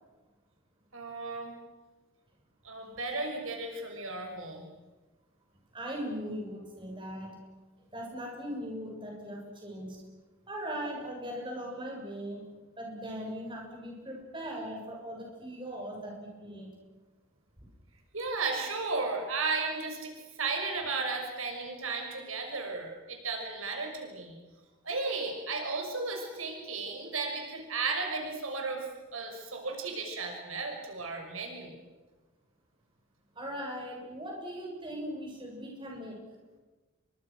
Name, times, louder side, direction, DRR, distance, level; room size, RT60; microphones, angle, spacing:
voice 1, 0.9-1.5 2.6-4.7 18.1-20.1 20.4-24.4 24.8-31.8, right 3 dB, 75° right, 3 dB, 6.1 m, -34 dB
voice 2, 5.7-7.4 7.9-10.0 10.5-16.7 33.4-36.2, equal, 20° right, 0 dB, 7.0 m, -39 dB
29.5 x 24.5 x 6.5 m, 1.2 s
head